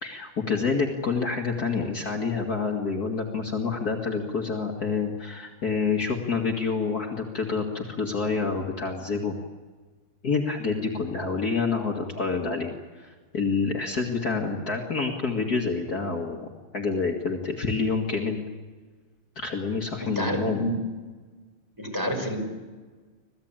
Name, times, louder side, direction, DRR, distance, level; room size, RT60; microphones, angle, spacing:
voice 1, 0.0-9.3 10.2-16.5 16.7-18.4 19.4-20.6, left 4 dB, 45° left, 1 dB, 2.5 m, -28 dB
voice 2, 20.0-20.7 21.8-22.4, equal, 10° right, 2 dB, 5.5 m, -29 dB
27.0 x 18.0 x 9.0 m, 1.4 s
omnidirectional pair, 2.4 m